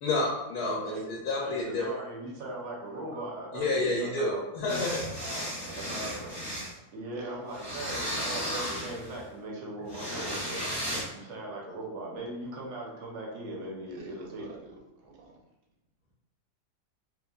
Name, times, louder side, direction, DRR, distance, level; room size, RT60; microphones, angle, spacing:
voice 1, 0.0-1.8 3.5-5.0, left 2 dB, 75° left, -3 dB, 1.0 m, -29 dB
voice 2, 0.6-1.0 1.4-4.7 5.8-6.1 6.9-10.6 11.1-14.4, right 2 dB, 60° right, -3 dB, 0.8 m, -39 dB
sound 1, 4.7-6.7 7.5-9.2 9.9-11.0, equal, 5° left, 0.8 m, -35 dB
voice 3, 5.2-6.3 7.1-7.3 13.9-15.3, right 3 dB, 80° right, 0 dB, 1.1 m, -47 dB
3.1 x 2.3 x 2.3 m, 0.98 s
omnidirectional pair, 1.7 m